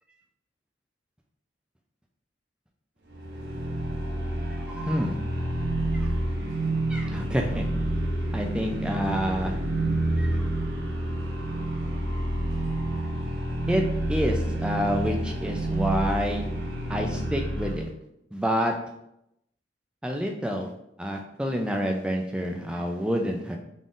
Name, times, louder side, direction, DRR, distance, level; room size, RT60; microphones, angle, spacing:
sound 1, 3.1-17.9, right 1 dB, 65° right, 0.8 m, -29 dB
voice 1, 4.7-5.2 5.9-6.1 6.9-7.7 8.3-9.5 10.2-10.3 13.7-13.8 14.1-16.5 16.9-17.9 18.3-18.7 20.0-20.7 21.0-23.6, equal, 5° right, 2 dB, 0.3 m, -28 dB
3.8 x 3.7 x 2.4 m, 0.81 s
head